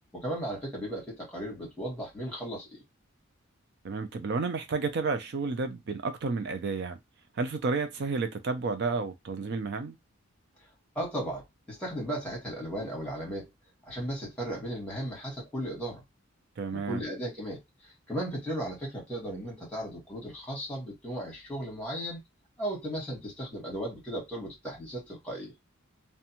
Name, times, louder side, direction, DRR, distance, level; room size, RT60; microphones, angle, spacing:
voice 1, 0.1-2.8 10.9-11.4 11.7-13.5 13.8-16.0 16.7-17.6 18.1-22.2 22.6-25.5, right 1 dB, 5° left, 1.3 m, -36 dB
voice 2, 3.8-7.0 7.4-10.0 16.6-17.0, right 4 dB, 55° right, 0.4 m, -31 dB
2.5 x 2.2 x 2.8 m
head